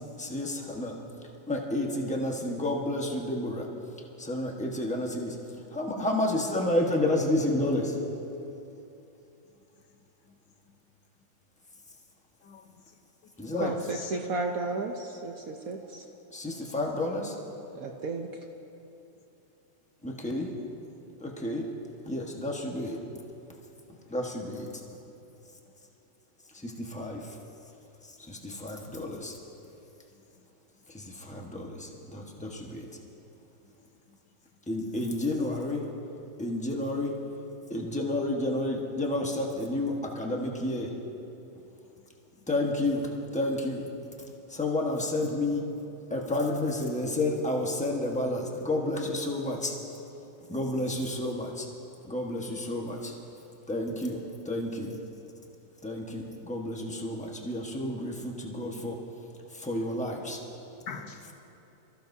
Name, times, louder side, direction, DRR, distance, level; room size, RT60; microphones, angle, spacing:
voice 1, 0.2-1.0 1.5-3.7 4.2-5.4 5.7-8.0 13.4-13.7 16.3-17.3 20.0-20.5 21.2-21.7 22.1-23.0 24.1-24.7 26.6-27.3 28.3-29.4 30.9-32.9 34.7-35.8 36.4-37.1 37.7-40.9 42.5-43.8 44.5-45.7 46.1-49.7 50.5-51.7 52.0-53.1 53.7-54.2 54.4-55.0 55.8-59.0 59.5-60.4, left 1 dB, 5° left, 0 dB, 0.9 m, -30 dB
voice 2, 12.4-13.0 13.4-14.2 30.1-30.2 31.0-31.1 34.1-34.2 42.0-42.1 42.4-42.5 60.9-61.3, left 5 dB, 75° left, 5 dB, 1.6 m, -40 dB
voice 3, 13.6-16.1 17.7-18.4, right 3 dB, 60° right, 2 dB, 1.0 m, -34 dB
25.5 x 14.5 x 2.7 m, 2.8 s
omnidirectional pair, 2.0 m